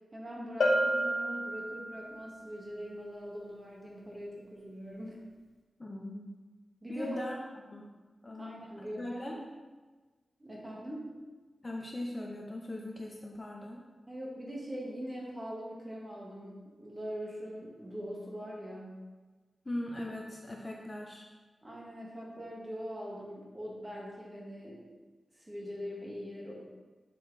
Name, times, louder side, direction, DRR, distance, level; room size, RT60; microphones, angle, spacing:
voice 1, 0.1-5.2 6.8-7.2 8.4-9.4 10.4-11.1 14.1-19.0 21.6-24.8 25.3-26.5, equal, 20° right, -4 dB, 1.9 m, -42 dB
Bell, 0.6-2.2, equal, 80° left, 0.8 m, -30 dB
voice 2, 5.8-6.4 6.9-7.9 8.2-9.4 11.6-13.8 19.7-21.2, left 1 dB, 25° left, 0 dB, 0.6 m, -40 dB
7.7 x 6.1 x 3.4 m, 1.3 s
wide cardioid pair, 145°, 0 cm